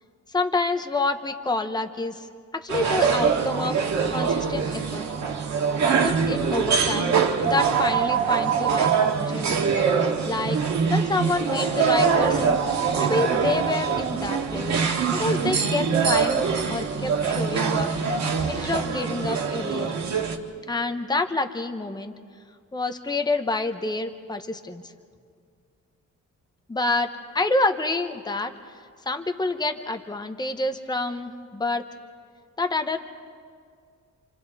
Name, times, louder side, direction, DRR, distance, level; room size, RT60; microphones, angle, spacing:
voice 1, 0.3-2.3 2.5-3.8 4.1-5.1 6.0-7.1 7.4-9.6 10.2-10.6 10.9-14.8 15.1-16.4 16.7-19.9 20.7-22.1 22.7-24.8 26.7-28.5 29.1-31.8 32.6-33.0, left 2 dB, 15° left, 7 dB, 1.0 m, -28 dB
sound 1, 2.7-20.4, right 6 dB, 60° right, 1.9 m, -23 dB
28.0 x 27.5 x 4.1 m, 2.1 s
wide cardioid pair, 155°, 31 cm